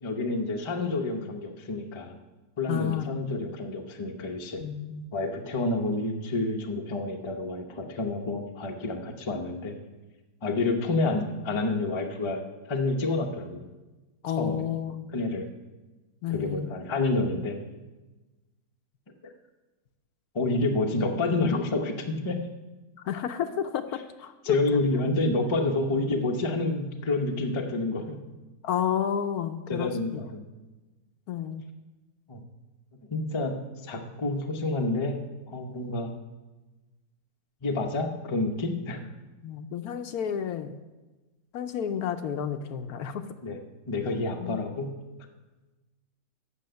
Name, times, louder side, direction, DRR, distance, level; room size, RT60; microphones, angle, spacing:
voice 1, 0.0-2.2 2.6-4.6 5.1-9.8 10.4-13.7 14.4-14.6 15.1-15.5 16.3-17.6 19.2-19.3 20.3-22.4 24.4-28.2 29.7-30.4 32.3-32.4 33.1-36.2 37.6-39.1 43.4-43.6 43.9-44.9, left 2 dB, 30° left, 3 dB, 0.6 m, -29 dB
voice 2, 2.7-3.5 4.6-5.1 14.2-15.1 16.2-16.7 23.0-24.6 28.6-30.2 31.3-31.6 39.4-40.8 41.5-43.3 44.4-44.6, left 8 dB, 70° left, 8 dB, 1.1 m, -31 dB
8.4 x 6.3 x 7.7 m, 1.1 s
omnidirectional pair, 1.7 m